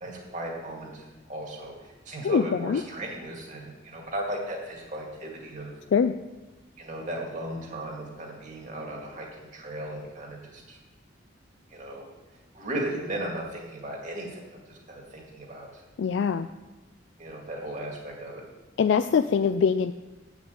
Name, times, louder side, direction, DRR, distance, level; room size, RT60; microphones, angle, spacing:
voice 1, 0.0-5.7 6.8-10.8 11.7-12.0 12.5-15.8 17.2-18.4, right 1 dB, 40° right, -1 dB, 2.2 m, -36 dB
voice 2, 2.2-2.8 5.9-6.1 16.0-16.5 18.8-19.9, left 6 dB, 65° left, 10 dB, 0.3 m, -23 dB
8.2 x 6.1 x 7.8 m, 1.1 s
head